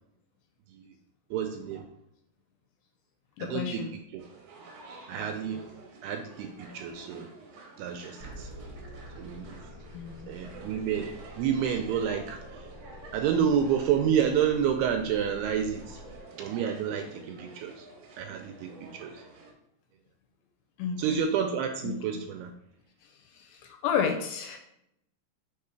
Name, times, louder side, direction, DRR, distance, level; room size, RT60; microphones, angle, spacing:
voice 1, 1.3-1.9 3.4-3.8 4.1-4.2 5.1-5.7 6.0-7.3 7.8-8.5 9.2-9.6 10.3-12.4 13.1-16.0 16.4-17.9 18.2-19.2 21.0-22.5, right 8 dB, 85° right, 5 dB, 2.4 m, -29 dB
voice 2, 3.4-4.0 9.9-10.3 20.8-21.2 21.8-22.2 23.3-24.6, left 7 dB, 85° left, 5 dB, 2.5 m, -32 dB
sound 1, 4.2-19.5, right 3 dB, 65° right, 2.0 m, -49 dB
sound 2, 8.2-16.2, equal, 60° left, 0.7 m, -47 dB
6.0 x 3.7 x 4.5 m, 0.77 s
omnidirectional pair, 5.0 m